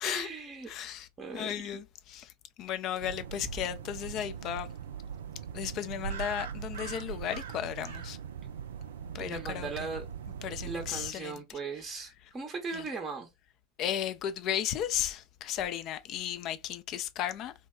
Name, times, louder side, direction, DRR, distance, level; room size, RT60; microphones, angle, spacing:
voice 1, 0.0-0.7 1.2-1.8 7.1-7.2 9.2-10.0 10.6-13.3, right 4 dB, 25° right, 0.6 m, -38 dB
voice 2, 0.7-1.1 1.3-2.3 2.6-4.7 5.5-8.2 9.1-9.7 10.4-11.4 12.7-12.8 13.8-17.5, left 10 dB, 45° left, 0.4 m, -34 dB
sound 1, 3.0-11.1, right 7 dB, 70° right, 0.4 m, -40 dB
2.8 x 2.2 x 2.2 m
figure-of-eight pair, 80°, 0 cm